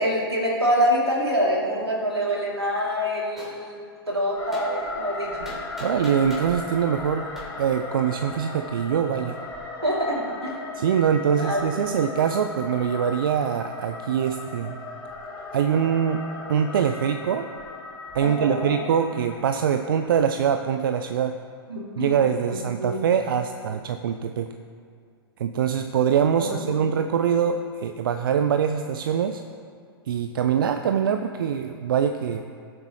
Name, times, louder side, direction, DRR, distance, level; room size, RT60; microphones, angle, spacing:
voice 1, 0.0-3.8 4.1-5.5 9.8-10.6 11.3-12.0 18.2-18.7 21.7-22.1 22.5-23.1 26.4-26.5, equal, 85° right, -3 dB, 2.8 m, -26 dB
Gunshot gunfire, 3.4-3.5 4.5-4.7 5.4-6.5 7.4-7.5, left 1 dB, 5° right, 3.1 m, -40 dB
sound 1, 4.3-20.4, left 2 dB, 25° left, 2.5 m, -37 dB
voice 2, 5.8-7.3 7.6-9.4 10.7-14.8 15.5-16.2 16.5-17.5 18.1-21.4 22.0-24.5 25.4-29.4 30.1-32.4, right 8 dB, 60° right, 8 dB, 0.5 m, -23 dB
19.5 x 7.7 x 3.1 m, 2.2 s
figure-of-eight pair, 105°, 13 cm